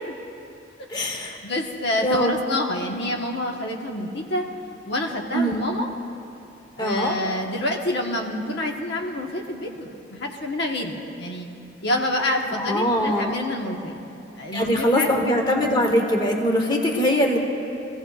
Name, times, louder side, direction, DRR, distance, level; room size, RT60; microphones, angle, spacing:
voice 1, 0.9-1.4 2.0-2.4 5.3-5.5 6.8-7.1 12.5-13.3 14.5-17.4, equal, 25° left, 2 dB, 1.1 m, -22 dB
voice 2, 1.4-4.5 4.9-5.9 6.8-11.5 11.8-14.0 14.4-15.1, left 1 dB, 65° left, 1 dB, 1.2 m, -27 dB
26.5 x 16.0 x 2.4 m, 2.7 s
head